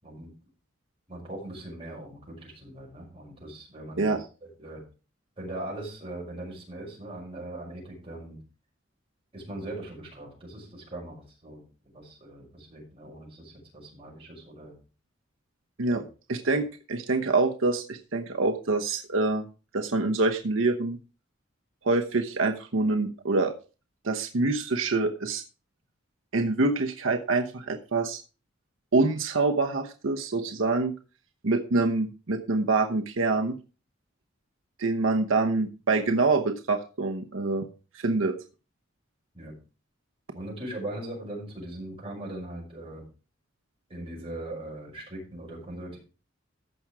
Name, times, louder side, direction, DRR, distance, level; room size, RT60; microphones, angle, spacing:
voice 1, 1.1-4.2 4.6-4.8 5.4-8.4 9.3-11.6 11.9-14.7 15.9-16.0 16.5-16.6 39.3-39.5 40.3-43.0 43.9-46.0, right 1 dB, 30° right, -3 dB, 6.1 m, -40 dB
voice 2, 16.3-19.4 19.7-21.0 21.8-23.5 24.0-25.4 26.3-28.2 28.9-30.9 31.4-33.6 34.8-37.6 37.9-38.3, right 3 dB, 85° right, 4 dB, 1.0 m, -26 dB
14.5 x 6.1 x 4.8 m, 0.34 s
head